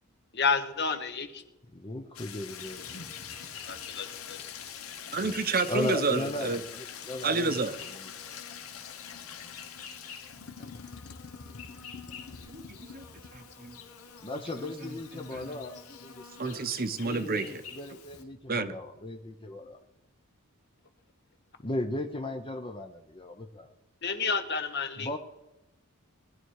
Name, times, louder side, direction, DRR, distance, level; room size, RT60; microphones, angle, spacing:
voice 1, 0.3-1.4 3.6-4.5 24.0-25.1, left 5 dB, 50° left, 8 dB, 1.4 m, -30 dB
voice 2, 1.7-2.9 5.2-5.4 5.7-8.1 14.2-16.2 17.0-19.8 21.6-23.7 25.0-25.2, left 1 dB, 25° left, 5 dB, 0.8 m, -36 dB
sound 1, 2.1-13.5, left 8 dB, 75° left, 1.2 m, -44 dB
Insect, 2.5-18.2, left 6 dB, 90° left, 2.1 m, -49 dB
voice 3, 5.1-6.6 7.2-7.7 12.5-13.0 13.3-13.8 15.3-15.4 16.4-17.5 18.5-18.8, right 4 dB, 40° right, 10 dB, 0.9 m, -30 dB
20.0 x 11.5 x 4.8 m, 0.94 s
head